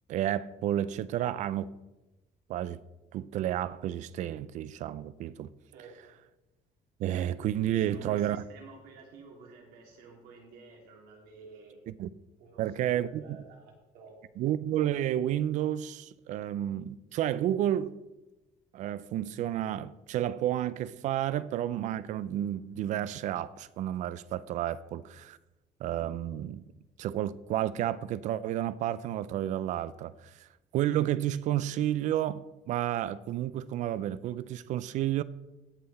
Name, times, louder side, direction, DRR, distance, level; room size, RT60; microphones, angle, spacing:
voice 1, 0.1-1.7 2.5-2.8 3.1-5.5 7.0-8.4 12.0-12.1 12.6-13.2 14.4-18.0 18.7-25.4 25.8-26.6 27.0-30.5 30.7-35.2, right 12 dB, 50° right, 0.4 m, -31 dB
voice 2, 5.6-6.2 7.6-11.8 12.4-14.1, right 4 dB, 85° right, 2.9 m, -51 dB
16.5 x 5.8 x 4.2 m
cardioid pair, 170°, 15 cm